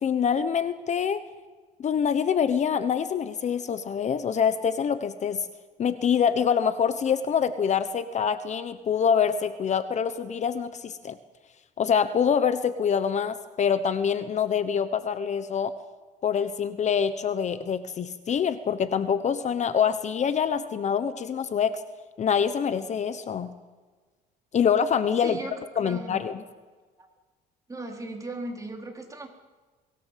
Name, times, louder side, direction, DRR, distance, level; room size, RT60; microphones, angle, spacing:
voice 1, 0.0-1.2 1.8-5.5 5.8-11.2 11.8-15.7 16.2-21.8 22.2-23.5 24.5-25.4 25.8-26.4, left 7 dB, 45° left, 12 dB, 1.1 m, -25 dB
voice 2, 25.2-26.2 27.0-27.1 27.7-29.3, right 2 dB, 20° right, 2 dB, 4.0 m, -37 dB
23.5 x 17.5 x 7.6 m, 1.4 s
cardioid pair, 110°, 17 cm